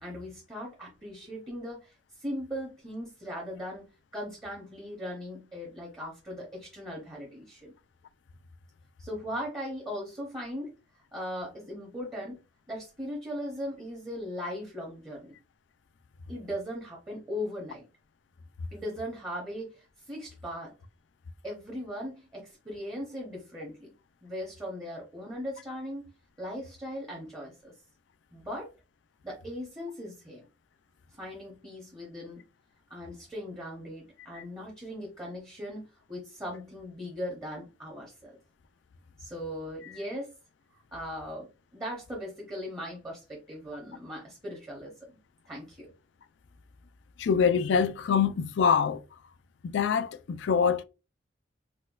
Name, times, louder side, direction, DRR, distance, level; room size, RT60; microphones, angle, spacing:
voice 1, 0.0-1.9 2.2-3.9 4.1-7.7 9.0-12.4 12.7-15.3 16.3-17.9 18.7-20.7 21.4-23.9 24.2-26.1 26.4-27.7 28.3-28.7 29.2-30.4 31.1-32.4 32.9-38.4 39.2-40.3 40.7-41.5 41.7-45.2 45.5-45.9, equal, 15° right, 0.8 m, -39 dB
voice 2, 47.2-49.0 49.6-50.8, left 6 dB, 75° left, 0.3 m, -25 dB
4.1 x 2.2 x 2.4 m
head